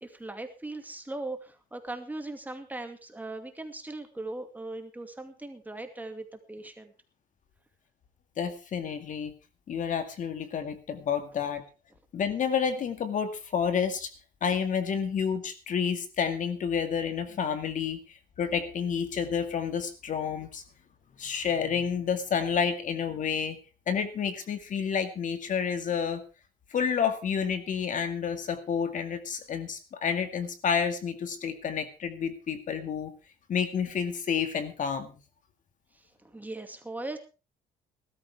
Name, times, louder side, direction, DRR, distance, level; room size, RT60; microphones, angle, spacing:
voice 1, 0.0-6.9 35.9-37.2, right 2 dB, 10° right, 6 dB, 2.4 m, -39 dB
voice 2, 8.4-9.3 9.7-11.6 12.1-14.1 14.4-20.6 21.2-23.6 23.9-26.2 26.7-33.1 33.5-35.2, left 7 dB, 50° left, 9 dB, 2.1 m, -30 dB
19.5 x 13.0 x 3.6 m, 0.32 s
cardioid pair, 110°, 17 cm